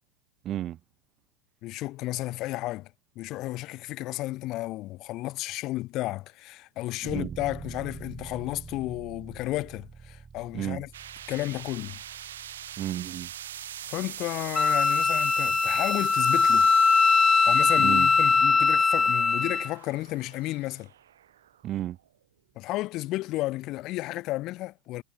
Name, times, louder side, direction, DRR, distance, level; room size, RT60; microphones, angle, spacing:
voice 1, 0.4-0.8 7.0-7.4 10.5-10.8 12.8-13.3 17.8-18.1 21.6-22.0, right 12 dB, 40° right, 0.9 m, -32 dB
voice 2, 1.6-2.9 3.2-10.9 11.3-12.0 13.8-16.7 17.5-20.9 22.6-25.0, left 18 dB, 50° left, 1.1 m, -32 dB
sound 1, 7.1-17.6, right 5 dB, 20° right, 3.8 m, -47 dB
sound 2, 10.9-22.1, right 11 dB, 80° right, 2.0 m, -42 dB
Wind instrument woodwind instrument, 14.5-19.7, left 4 dB, 15° left, 0.4 m, -21 dB
hypercardioid pair, 100°, 0 cm